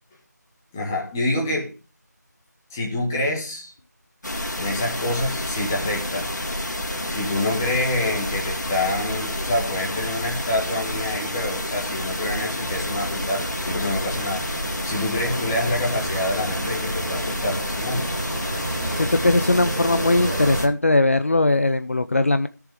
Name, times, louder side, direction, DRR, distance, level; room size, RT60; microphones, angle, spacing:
voice 1, 0.7-1.7 2.7-3.7 4.6-6.3 7.1-14.4 14.8-18.1, left 1 dB, 10° left, -3 dB, 1.9 m, -27 dB
sound 1, 4.2-20.7, left 1 dB, 75° left, 3.6 m, -29 dB
sound 2, 12.7-20.6, right 1 dB, 55° right, 2.9 m, -32 dB
voice 2, 19.0-22.5, left 2 dB, 45° left, 11 dB, 0.6 m, -19 dB
14.5 x 7.0 x 5.0 m, 0.33 s
figure-of-eight pair, 175°, 10 cm